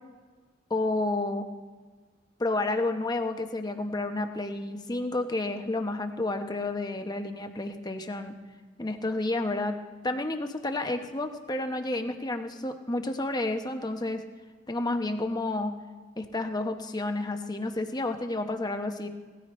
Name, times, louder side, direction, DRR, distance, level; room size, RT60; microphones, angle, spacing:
voice 1, 0.7-1.5 2.4-8.4 8.8-9.8 10.0-14.2 14.7-15.7 16.2-19.1, left 2 dB, 20° left, 6 dB, 0.9 m, -30 dB
18.0 x 14.0 x 3.1 m, 1.4 s
head